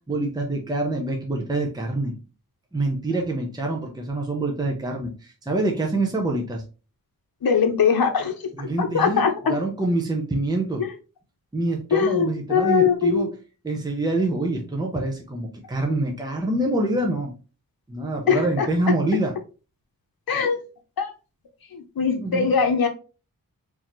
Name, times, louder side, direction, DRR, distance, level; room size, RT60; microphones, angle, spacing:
voice 1, 0.1-2.1 2.7-6.6 8.6-10.8 11.5-13.3 13.6-17.3 17.9-19.3 22.2-22.5, right 2 dB, 10° right, 0 dB, 0.8 m, -26 dB
voice 2, 7.4-8.3 8.8-9.6 10.8-10.9 11.9-13.3 18.3-18.7 20.3-20.6 21.0-21.1 21.7-22.9, left 6 dB, 90° left, 4 dB, 0.7 m, -21 dB
4.1 x 2.8 x 3.1 m, 0.34 s
wide cardioid pair, 100°, 35 cm